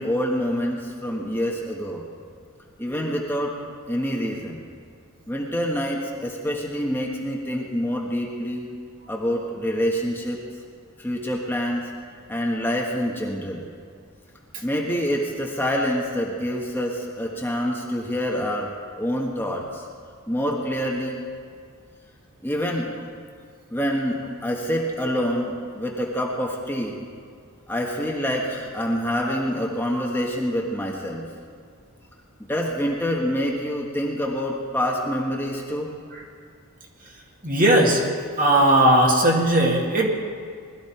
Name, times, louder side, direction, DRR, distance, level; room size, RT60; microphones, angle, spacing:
voice 1, 0.0-2.0 2.8-3.5 3.9-4.6 5.3-8.7 9.1-10.4 11.0-11.8 12.3-13.6 14.6-18.7 19.0-19.6 20.3-21.2 22.4-22.9 23.7-27.0 27.7-31.3 32.5-36.0, equal, 10° left, -2 dB, 1.4 m, -26 dB
voice 2, 37.4-38.0 38.4-40.1, right 1 dB, 40° right, -1 dB, 2.2 m, -18 dB
21.0 x 13.0 x 4.5 m, 2.2 s
head